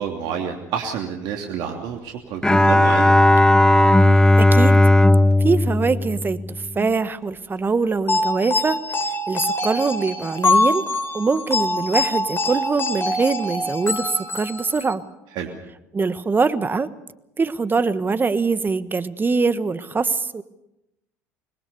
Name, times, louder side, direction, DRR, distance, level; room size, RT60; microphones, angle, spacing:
voice 1, 0.0-3.1 15.3-15.5, right 7 dB, 65° right, 2 dB, 2.9 m, -29 dB
Bowed string instrument, 2.4-6.9, left 1 dB, 10° left, 1.4 m, -15 dB
voice 2, 4.4-4.8 5.4-8.8 9.3-10.8 11.1-15.0 15.9-16.9 17.4-20.4, right 4 dB, 25° right, 13 dB, 1.4 m, -23 dB
sound 1, 8.1-14.9, left 2 dB, 30° left, 3.6 m, -24 dB
26.5 x 21.0 x 6.9 m, 0.88 s
hypercardioid pair, 70°, 8 cm